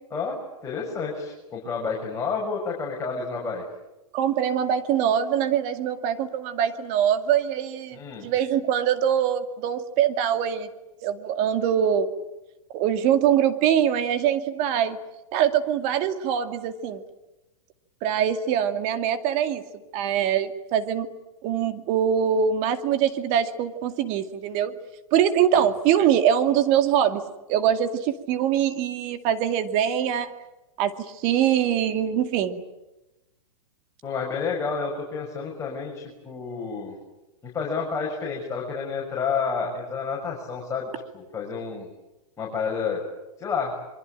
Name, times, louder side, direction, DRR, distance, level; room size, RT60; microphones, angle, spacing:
voice 1, 0.6-3.6 7.9-8.3 34.0-37.0 37.4-40.9 41.1-41.9 42.4-43.0 43.4-43.7, left 5 dB, 15° left, -2 dB, 6.8 m, -30 dB
voice 2, 4.1-10.7 11.0-12.1 12.7-15.0 15.3-17.0 18.0-19.6 19.9-21.1 21.4-24.7 25.1-27.2 27.5-30.3 30.8-32.6, right 9 dB, 40° right, 8 dB, 2.3 m, -23 dB
26.5 x 24.0 x 9.1 m, 1.0 s
hypercardioid pair, 125°, 18 cm